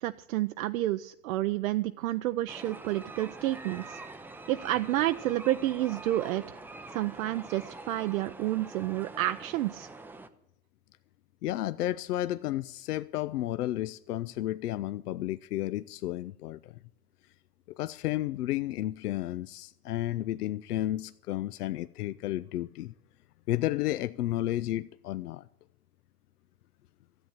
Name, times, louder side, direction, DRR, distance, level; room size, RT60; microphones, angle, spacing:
voice 1, 0.0-4.0 4.5-6.4 6.9-9.9, right 15 dB, 65° right, 0.6 m, -30 dB
sound 1, 2.5-10.3, right 2 dB, 5° right, 0.4 m, -45 dB
voice 2, 11.4-16.8 17.7-22.9 23.5-25.5, left 14 dB, 85° left, 0.5 m, -32 dB
13.5 x 7.9 x 8.8 m
hypercardioid pair, 110°, 45 cm